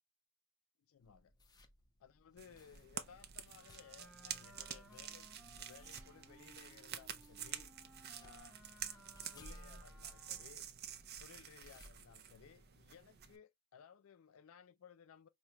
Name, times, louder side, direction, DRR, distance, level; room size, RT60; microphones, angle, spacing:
voice 1, 0.8-1.3 2.0-7.7 8.2-10.7 11.2-15.3, left 7 dB, 70° left, 0.4 m, -60 dB
sound 1, 1.0-12.9, left 1 dB, 20° left, 0.5 m, -63 dB
sound 2, 2.4-13.4, right 9 dB, 50° right, 0.5 m, -49 dB
Wind instrument woodwind instrument, 3.5-10.7, right 2 dB, 5° right, 0.9 m, -62 dB
4.8 x 2.2 x 2.8 m
head